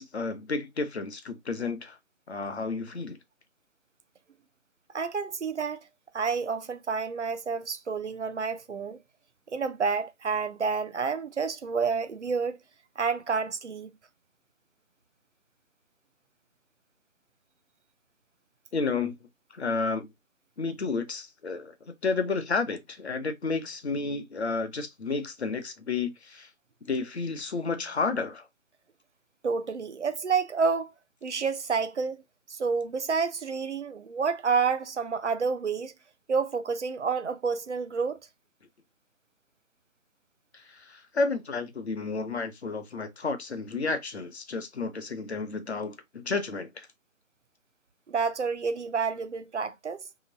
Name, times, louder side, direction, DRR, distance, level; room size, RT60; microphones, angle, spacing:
voice 1, 0.0-2.0 2.3-3.2 18.7-19.1 19.5-20.1 20.6-26.5 26.9-28.4 40.7-46.9, left 4 dB, 50° left, 0.9 m, -31 dB
voice 2, 4.9-5.9 6.1-9.0 9.5-12.6 13.0-13.9 29.4-30.9 31.2-32.2 32.5-35.9 36.3-38.2 48.1-50.0, right 5 dB, 60° right, 0.6 m, -29 dB
3.1 x 3.0 x 3.9 m
figure-of-eight pair, 155°, 40 cm